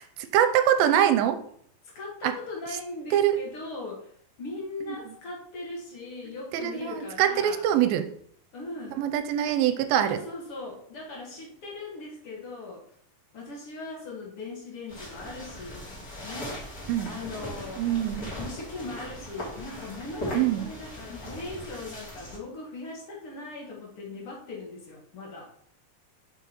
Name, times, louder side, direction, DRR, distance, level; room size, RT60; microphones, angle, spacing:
voice 1, 0.0-1.4 2.2-2.4 3.1-3.4 4.8-5.1 6.5-8.1 9.0-10.2 16.9-17.1 17.8-18.3 20.3-20.7, right 10 dB, 85° right, 9 dB, 2.4 m, -24 dB
voice 2, 2.0-7.7 8.5-9.0 10.0-12.9 13.3-15.8 16.2-16.6 17.0-17.8 18.4-25.5, left 2 dB, 50° left, -3 dB, 2.0 m, -39 dB
sound 1, 14.9-22.4, left 1 dB, 25° left, 3.0 m, -39 dB
7.1 x 6.0 x 3.0 m, 0.63 s
omnidirectional pair, 4.2 m